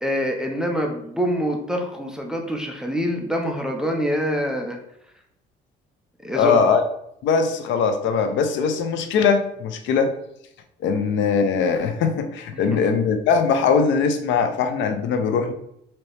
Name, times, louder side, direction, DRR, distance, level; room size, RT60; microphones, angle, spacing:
voice 1, 0.0-4.8 6.2-6.6 12.7-12.8, equal, 5° right, 1 dB, 0.5 m, -25 dB
voice 2, 6.4-6.8 7.2-10.1 10.8-15.5, left 5 dB, 75° left, 8 dB, 0.6 m, -21 dB
4.0 x 2.8 x 3.3 m, 0.76 s
cardioid pair, 120°, 19 cm